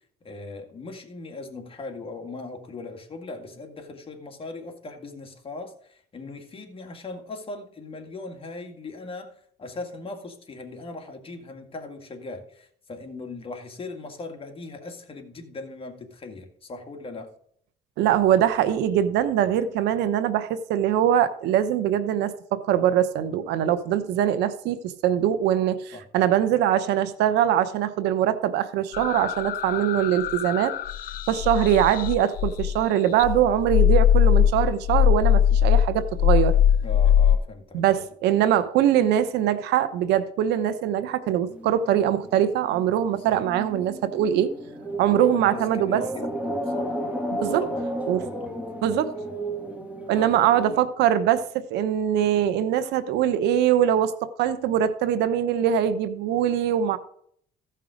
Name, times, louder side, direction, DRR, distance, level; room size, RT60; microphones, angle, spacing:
voice 1, 0.2-17.3 25.9-26.1 36.8-38.0 43.3-43.4 45.1-46.9 47.4-47.8 48.2-49.3 50.1-50.3, left 3 dB, 35° left, 2.1 m, -39 dB
voice 2, 18.0-30.7 31.3-36.6 37.7-44.5 45.0-46.0 47.3-47.6 48.1-48.2 48.8-49.1 50.1-57.0, right 10 dB, 85° right, 0.9 m, -22 dB
sound 1, 28.9-32.8 33.2-37.4, left 10 dB, 55° left, 0.5 m, -21 dB
sound 2, 41.5-50.8, right 1 dB, 10° right, 1.9 m, -33 dB
15.0 x 5.6 x 5.1 m
cardioid pair, 110°, 17 cm